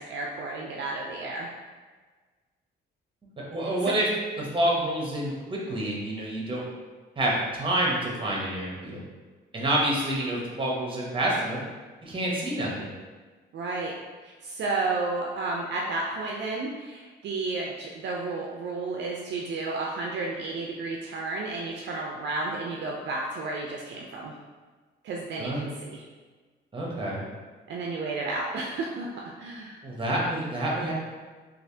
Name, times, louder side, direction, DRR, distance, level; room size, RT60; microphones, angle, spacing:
voice 1, 0.0-1.5 3.8-3.9 13.5-13.9 14.2-24.3 25.0-26.0 27.7-29.8, right 3 dB, 65° right, -2 dB, 0.4 m, -32 dB
voice 2, 3.5-4.1 4.4-6.6 7.2-9.0 9.5-11.6 12.0-12.9 25.4-25.6 26.7-27.2 29.8-30.9, right 1 dB, 25° right, -3 dB, 0.9 m, -28 dB
3.2 x 2.4 x 2.7 m, 1.4 s
cardioid pair, 90°, 20 cm